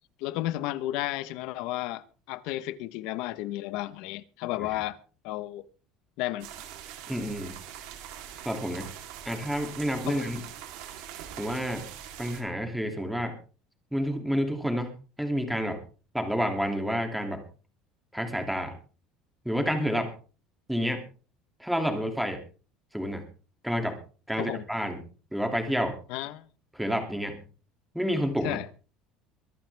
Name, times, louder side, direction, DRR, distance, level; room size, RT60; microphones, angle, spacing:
voice 1, 0.2-5.0 5.2-5.6 6.2-6.5 10.1-10.2 24.4-24.6 26.1-26.5 28.4-28.7, left 16 dB, 65° left, 1.1 m, -33 dB
sound 1, 6.4-12.4, right 10 dB, 75° right, 3.4 m, -43 dB
voice 2, 7.1-7.6 8.4-8.9 9.2-10.4 11.4-11.8 12.2-13.3 13.9-14.9 15.2-15.8 16.1-17.4 18.1-18.7 19.4-20.1 20.7-21.0 21.6-22.4 22.9-23.2 23.6-24.0 24.3-25.0 25.3-26.0 26.7-27.4 27.9-28.6, equal, ahead, 2.7 m, -29 dB
23.5 x 11.5 x 3.5 m
cardioid pair, 160°, 0 cm